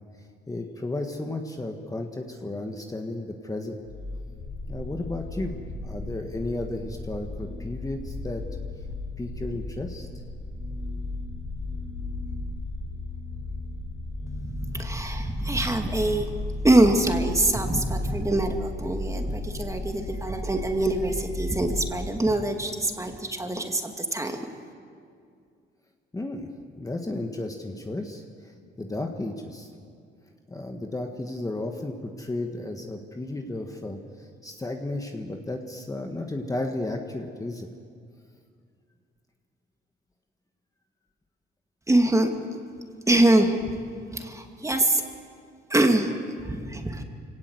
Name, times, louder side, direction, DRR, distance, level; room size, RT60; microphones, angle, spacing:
voice 1, 0.5-3.8 4.7-5.5 5.8-8.4 9.2-10.1 26.1-29.7 30.5-37.7, left 2 dB, 15° left, 3 dB, 1.6 m, -33 dB
sound 1, 3.8-21.8, left 2 dB, 65° left, 6.7 m, -34 dB
voice 2, 14.4-16.3 16.6-24.4 41.9-42.3 43.1-43.7 44.1-45.0 45.7-46.1 46.4-47.0, right 1 dB, 15° right, 4 dB, 2.3 m, -24 dB
24.0 x 18.0 x 8.0 m, 2.3 s
cardioid pair, 90°, 20 cm